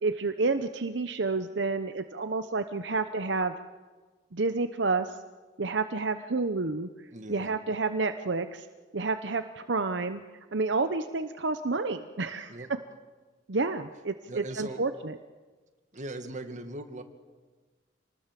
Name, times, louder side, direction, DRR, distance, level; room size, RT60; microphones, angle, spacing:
voice 1, 0.0-3.5 4.3-5.2 5.6-6.9 7.3-8.7 8.9-10.2 10.5-12.8 13.5-15.1, right 3 dB, 70° right, 9 dB, 0.9 m, -29 dB
voice 2, 7.1-7.5 12.5-12.7 14.3-14.8 15.9-17.0, right 2 dB, 45° right, 7 dB, 2.1 m, -39 dB
27.5 x 20.0 x 7.5 m, 1.3 s
head